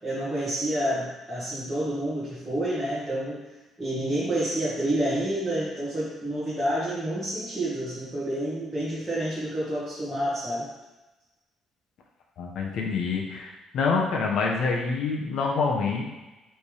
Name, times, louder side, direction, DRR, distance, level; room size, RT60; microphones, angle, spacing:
voice 1, 0.0-3.4 3.8-10.7, right 1 dB, 5° right, -13 dB, 1.7 m, -29 dB
voice 2, 12.4-16.0, left 4 dB, 55° left, 0 dB, 1.0 m, -26 dB
5.5 x 3.6 x 4.9 m, 1.1 s
cardioid pair, 175°, 0 cm